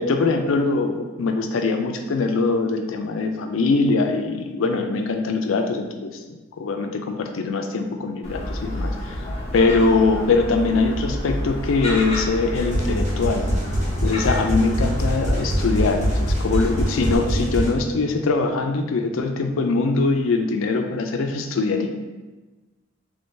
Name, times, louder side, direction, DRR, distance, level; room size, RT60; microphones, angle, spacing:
voice 1, 0.0-6.2 6.6-9.2 9.5-13.5 14.0-21.9, left 3 dB, 75° left, 5 dB, 0.4 m, -22 dB
Gull seagull, 8.2-17.2, left 1 dB, 35° left, 0.7 m, -29 dB
sound 1, 12.5-17.7, equal, 35° right, 1.0 m, -24 dB
3.6 x 3.3 x 2.6 m, 1.2 s
head